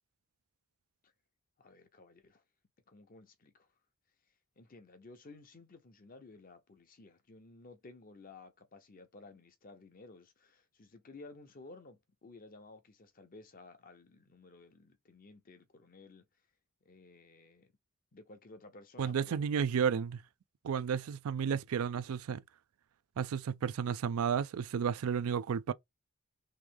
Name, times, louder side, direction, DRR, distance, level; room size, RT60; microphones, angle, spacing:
voice 1, 1.6-2.4 2.9-3.7 4.6-16.2 16.8-17.7 18.1-19.5, left 3 dB, 40° left, 0.7 m, -55 dB
voice 2, 19.0-20.2 20.6-22.4 23.2-25.7, right 7 dB, 75° right, 0.4 m, -32 dB
3.1 x 3.0 x 3.5 m
head